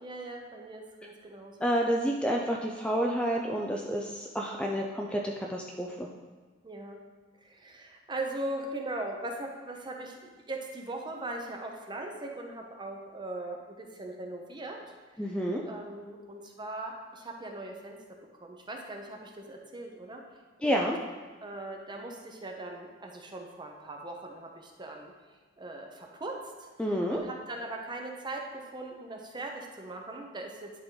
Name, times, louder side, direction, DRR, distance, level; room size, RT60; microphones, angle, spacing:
voice 1, 0.0-1.7 4.4-4.6 6.6-7.0 7.4-14.8 15.2-18.0 18.4-20.2 20.6-20.9 21.4-25.1 25.6-30.7, right 2 dB, 25° right, 1 dB, 0.8 m, -40 dB
voice 2, 1.6-6.1 15.2-15.6 20.6-21.0 26.8-27.2, equal, 5° left, -1 dB, 0.4 m, -29 dB
10.5 x 3.7 x 3.9 m, 1.4 s
head